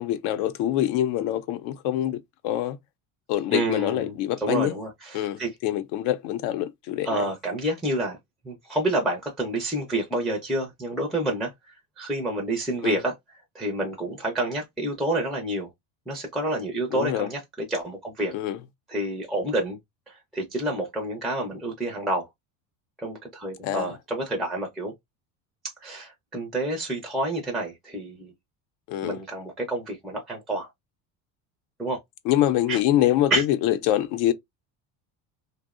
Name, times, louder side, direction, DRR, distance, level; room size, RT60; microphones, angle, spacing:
voice 1, 0.0-2.2 2.4-2.8 3.3-4.7 5.1-7.3 12.8-13.0 16.9-17.3 18.3-18.6 23.6-23.9 28.9-29.2 32.3-33.3 33.6-34.3, left 12 dB, 70° left, 0.5 m, -25 dB
voice 2, 3.5-5.6 7.0-8.2 8.4-11.5 12.0-13.1 13.5-15.7 16.1-18.3 18.9-19.8 20.1-22.3 23.0-24.9 25.8-28.3 29.0-30.7 31.8-32.0 32.7-32.8 33.3-33.4, right 1 dB, ahead, 0.4 m, -28 dB
2.6 x 2.0 x 2.4 m
cardioid pair, 125°, 40 cm